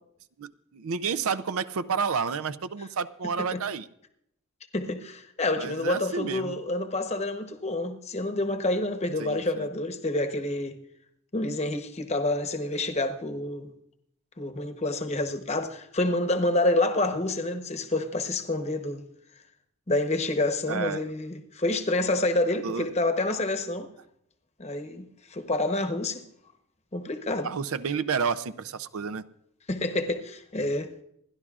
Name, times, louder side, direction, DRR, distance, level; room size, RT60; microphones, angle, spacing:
voice 1, 0.4-3.9 5.6-6.5 9.2-9.7 20.7-21.0 22.6-22.9 27.4-29.2, right 6 dB, 75° right, 0.5 m, -30 dB
voice 2, 4.7-10.8 11.3-13.7 14.4-19.0 19.9-23.9 24.6-25.0 25.3-26.2 26.9-27.5 29.7-30.9, left 2 dB, 30° left, 0.9 m, -28 dB
28.5 x 11.0 x 2.4 m
head